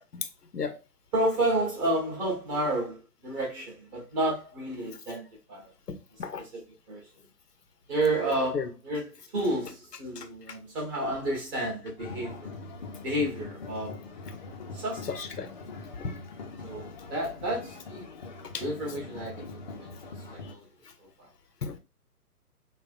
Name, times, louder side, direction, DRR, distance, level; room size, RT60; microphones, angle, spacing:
voice 1, 1.1-5.7 6.4-7.1 7.9-12.6 13.0-14.2 14.7-15.0 16.6-18.1 18.6-20.7 21.0-21.3, right 1 dB, 20° right, 1.6 m, -31 dB
voice 2, 5.9-6.4 8.5-8.7 10.2-10.5 15.1-15.5 15.9-16.1 21.6-21.8, left 5 dB, 80° left, 0.9 m, -34 dB
sound 1, 12.0-20.5, left 3 dB, 30° left, 0.7 m, -42 dB
6.3 x 2.4 x 2.5 m
figure-of-eight pair, 135°, 47 cm